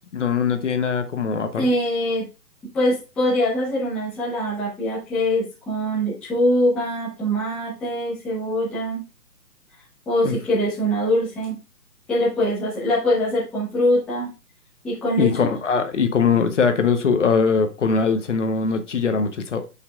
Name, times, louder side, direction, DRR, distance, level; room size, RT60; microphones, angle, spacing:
voice 1, 0.1-1.7 10.2-10.3 15.2-19.6, left 5 dB, 45° left, 8 dB, 1.0 m, -21 dB
voice 2, 1.5-2.3 2.7-9.0 10.1-11.6 12.1-14.3 14.8-15.5, equal, ahead, -9 dB, 1.0 m, -23 dB
10.5 x 5.5 x 2.4 m, 0.31 s
hypercardioid pair, 160°, 50 cm